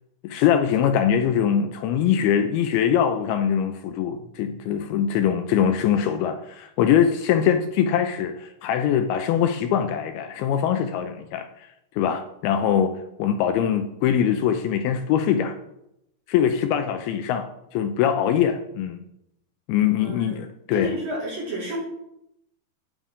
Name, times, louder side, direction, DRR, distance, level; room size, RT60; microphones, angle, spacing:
voice 1, 0.2-11.7 12.0-12.9 13.2-15.6 16.3-17.5 17.7-19.0 19.7-20.9, left 9 dB, 80° left, 7 dB, 2.3 m, -22 dB
voice 2, 20.0-20.4 20.7-21.8, left 1 dB, 45° right, -4 dB, 3.0 m, -30 dB
9.1 x 8.4 x 3.7 m, 0.82 s
omnidirectional pair, 4.7 m